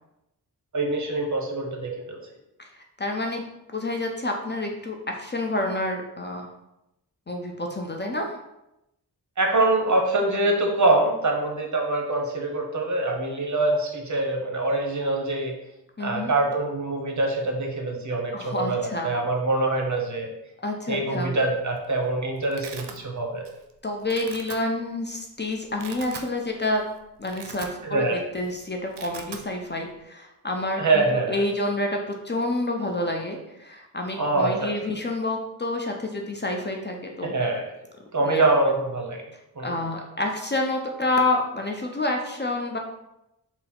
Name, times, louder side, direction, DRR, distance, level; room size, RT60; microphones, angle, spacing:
voice 1, 0.7-2.2 9.4-15.5 16.0-20.3 20.9-23.4 27.9-28.2 30.8-31.4 34.2-34.7 37.2-37.6 38.1-39.2 39.6-39.8, right 2 dB, 45° right, 1 dB, 0.8 m, -24 dB
voice 2, 2.6-3.4 3.7-6.5 7.3-8.4 16.0-16.3 18.3-19.1 20.6-21.4 23.8-26.8 27.2-37.4 38.2-38.4 39.6-42.8, left 2 dB, 25° left, 2 dB, 0.6 m, -28 dB
Domestic sounds home sounds, 21.5-21.9 22.1-23.0 23.4-23.7 24.0-24.6 25.2-25.3 25.6-26.3 26.7-26.8 27.2-28.1 28.3-28.5 28.8-29.4, right 7 dB, 85° right, 0.5 m, -40 dB
3.9 x 2.0 x 4.2 m, 0.89 s
cardioid pair, 45°, 40 cm